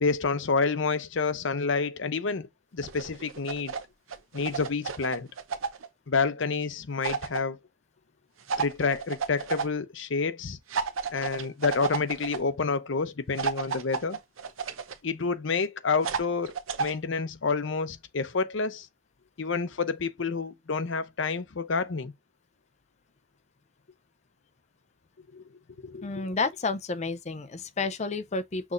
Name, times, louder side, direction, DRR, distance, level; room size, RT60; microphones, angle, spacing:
voice 1, 0.0-2.5 2.7-3.7 4.3-5.3 6.1-7.6 8.6-10.6 11.1-14.2 15.0-18.9 19.4-22.1 25.3-25.4 25.8-26.1, left 4 dB, 70° left, 0.7 m, -29 dB
sound 1, 2.8-3.8 4.1-5.9 7.0-7.4 8.5-9.7 10.7-12.4 13.4-15.0 16.0-16.9, right 5 dB, 85° right, 0.7 m, -32 dB
voice 2, 26.0-28.7, left 3 dB, 35° left, 0.5 m, -30 dB
6.1 x 3.1 x 2.5 m
head